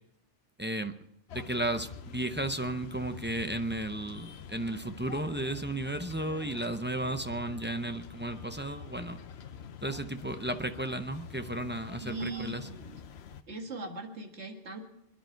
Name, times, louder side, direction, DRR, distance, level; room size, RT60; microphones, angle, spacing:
voice 1, 0.6-0.9 1.3-9.2 9.8-12.6, right 1 dB, 15° right, 8 dB, 0.4 m, -34 dB
sound 1, 1.3-13.4, left 7 dB, 60° left, 1.0 m, -46 dB
voice 2, 12.0-13.0 13.5-14.8, right 3 dB, 65° right, 3 dB, 2.2 m, -39 dB
26.5 x 10.5 x 4.5 m, 0.82 s
omnidirectional pair, 1.2 m